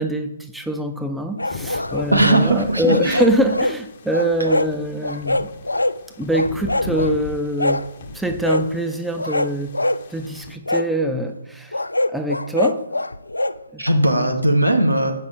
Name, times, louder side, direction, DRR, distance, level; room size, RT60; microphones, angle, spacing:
voice 1, 0.0-5.5 6.2-7.9 8.1-9.8 10.1-11.7 12.1-12.9 13.7-13.9 14.2-14.3, right 1 dB, ahead, 5 dB, 0.4 m, -24 dB
sound 1, 1.4-2.5 2.8-3.8 4.1-4.7 5.0-6.0 6.3-7.1 7.6-7.9 8.4-8.7 9.2-10.0 10.7-10.9 11.7-13.6, left 1 dB, 80° left, 0.3 m, -23 dB
sound 2, 1.5-10.6, left 4 dB, 40° left, 0.7 m, -38 dB
voice 2, 2.1-3.2 13.8-15.1, right 1 dB, 90° right, 3 dB, 1.2 m, -18 dB
7.7 x 5.6 x 4.0 m, 0.84 s
figure-of-eight pair, 135°, 0 cm